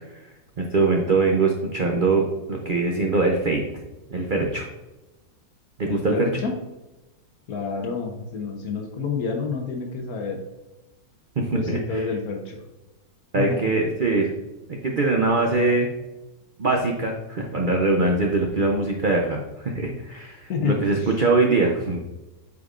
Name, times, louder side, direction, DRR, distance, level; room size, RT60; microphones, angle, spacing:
voice 1, 0.6-3.6 4.1-4.7 5.8-6.3 11.4-12.1 13.3-14.3 14.8-15.9 16.6-22.0, right 3 dB, 75° right, 1 dB, 0.4 m, -22 dB
voice 2, 5.8-6.5 7.5-10.4 11.5-12.6 13.3-13.6 20.5-20.7 21.0-21.1, left 5 dB, 60° left, 3 dB, 1.4 m, -29 dB
8.1 x 5.1 x 2.5 m, 1.1 s
omnidirectional pair, 1.9 m